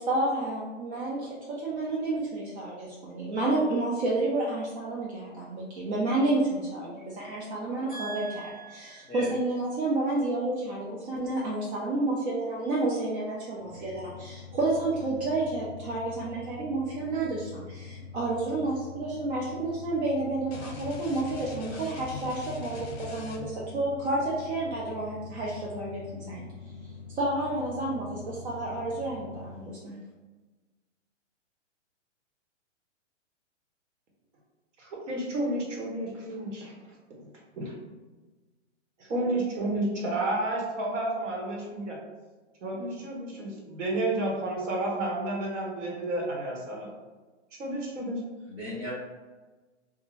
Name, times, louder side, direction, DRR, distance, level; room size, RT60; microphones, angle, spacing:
voice 1, 0.0-8.3 8.7-26.5 26.8-29.9, right 2 dB, 60° right, -5 dB, 0.6 m, -30 dB
voice 2, 7.9-9.3 48.5-48.9, right 1 dB, 5° right, -16 dB, 0.4 m, -39 dB
sound 1, 13.6-29.7, left 5 dB, 30° right, 0.8 m, -44 dB
sound 2, 20.5-23.7, left 4 dB, 55° left, 0.7 m, -42 dB
voice 3, 34.8-36.7 37.1-37.3 37.6-37.7 39.0-42.0 42.6-46.9 47.6-48.2, right 1 dB, 75° right, -2 dB, 1.1 m, -31 dB
2.5 x 2.2 x 3.1 m, 1.3 s
hypercardioid pair, 165°, 37 cm